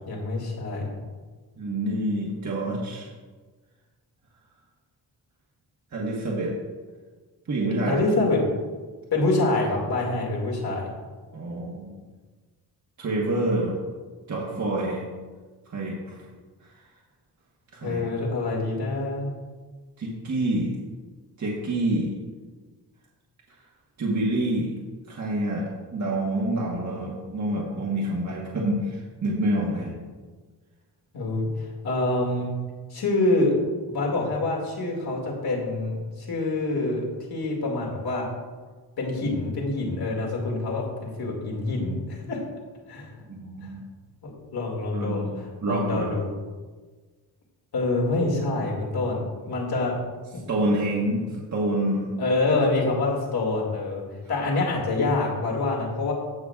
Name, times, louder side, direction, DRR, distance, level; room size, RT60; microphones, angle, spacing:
voice 1, 0.1-0.9 7.9-8.4 9.1-10.8 17.8-19.3 31.1-31.5 31.8-32.5 32.9-33.5 33.9-38.2 39.0-42.4 42.9-43.1 43.6-43.7 44.2-46.3 47.7-49.9 52.2-54.0 54.3-56.1, left 2 dB, 70° left, -2 dB, 2.3 m, -26 dB
voice 2, 1.6-3.1 5.9-6.5 7.5-8.0 11.3-11.9 13.0-13.7 14.3-15.0 15.7-16.2 17.7-18.0 20.0-20.7 21.4-22.1 24.0-24.7 25.1-29.9 43.3-43.8 44.9-46.2 50.5-52.2, right 1 dB, 45° right, -4 dB, 1.4 m, -27 dB
16.0 x 6.0 x 2.4 m, 1.4 s
wide cardioid pair, 140°, 39 cm